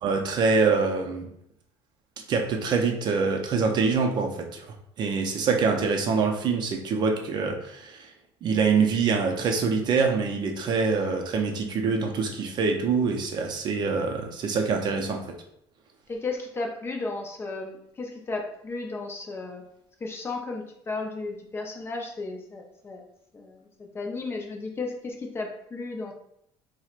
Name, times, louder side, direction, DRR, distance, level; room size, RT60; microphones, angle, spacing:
voice 1, 0.0-1.3 2.3-4.7 5.0-8.1 8.4-15.3, right 4 dB, 40° right, 3 dB, 0.5 m, -25 dB
voice 2, 16.1-19.6 20.0-23.0 23.3-23.7 23.9-26.1, left 3 dB, 20° left, 2 dB, 0.4 m, -34 dB
4.4 x 2.1 x 2.4 m, 0.74 s
cardioid pair, 145°, 11 cm